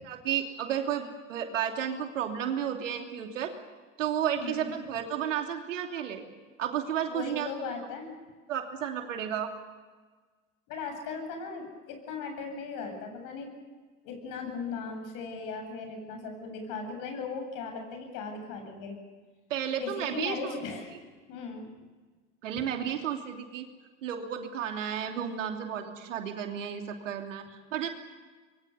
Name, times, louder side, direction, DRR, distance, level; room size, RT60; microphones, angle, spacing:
voice 1, 0.0-3.5 4.0-6.2 6.6-7.7 8.5-9.5 19.5-20.5 22.4-23.7 24.0-27.9, right 9 dB, 85° right, 4 dB, 3.0 m, -32 dB
voice 2, 4.4-4.8 7.1-8.2 10.7-13.5 14.0-19.0 19.8-20.9 21.3-21.7, left 4 dB, 60° left, 5 dB, 7.9 m, -38 dB
26.0 x 22.5 x 7.0 m, 1.4 s
hypercardioid pair, 80°, 37 cm